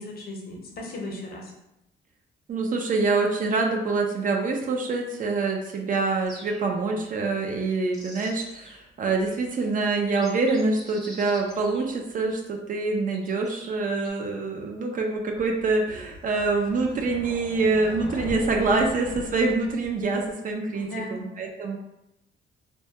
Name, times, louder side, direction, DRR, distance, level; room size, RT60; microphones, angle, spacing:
voice 1, 0.0-1.5 20.7-21.3, left 1 dB, 50° left, 0 dB, 0.7 m, -36 dB
voice 2, 2.5-21.8, right 3 dB, 45° right, 1 dB, 0.4 m, -25 dB
sound 1, 6.3-6.9 7.6-8.9 9.5-9.6 10.0-12.3 13.1-14.1, equal, ahead, 0.6 m, -47 dB
sound 2, 15.4-20.3, left 2 dB, 90° left, 0.5 m, -40 dB
2.2 x 2.2 x 2.7 m, 0.86 s
cardioid pair, 90°, 20 cm